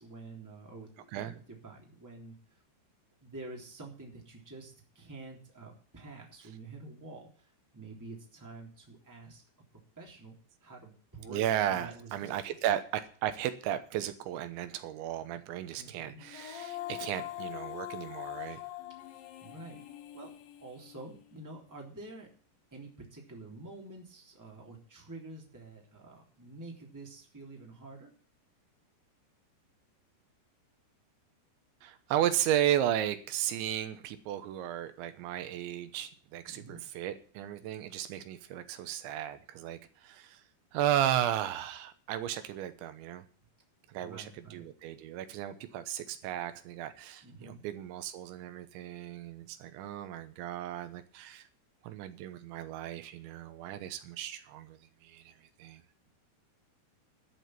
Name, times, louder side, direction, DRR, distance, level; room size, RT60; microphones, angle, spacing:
voice 1, 0.0-2.4 3.2-9.4 10.0-12.3 15.8-16.2 19.4-19.8 20.1-20.3 20.6-22.3 22.7-28.1 36.5-36.8 44.0-44.6 47.2-47.6, right 2 dB, 5° right, 0 dB, 2.4 m, -48 dB
voice 2, 11.3-18.6 31.8-40.4 40.7-43.3 43.9-51.5 51.8-55.8, right 11 dB, 85° right, 10 dB, 3.4 m, -34 dB
Female singing, 16.2-21.4, left 14 dB, 80° left, 3.5 m, -43 dB
12.5 x 6.5 x 9.2 m, 0.42 s
omnidirectional pair, 5.1 m